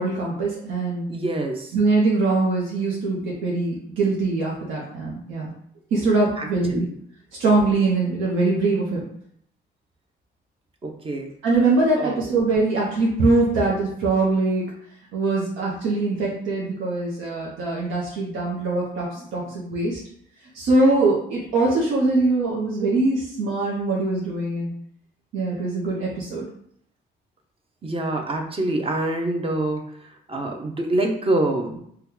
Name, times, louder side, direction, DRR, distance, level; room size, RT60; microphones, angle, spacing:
voice 1, 0.0-1.0 1.7-5.5 5.9-6.9 7.4-9.1 11.4-14.6 15.1-20.0 20.5-24.7 25.3-26.4, right 3 dB, 85° right, -4 dB, 0.7 m, -22 dB
voice 2, 1.1-1.8 6.4-6.9 10.8-11.3 12.0-12.2 27.8-31.8, right 2 dB, 30° right, 3 dB, 0.6 m, -26 dB
2.9 x 2.2 x 3.6 m, 0.67 s
cardioid pair, 90°, 20 cm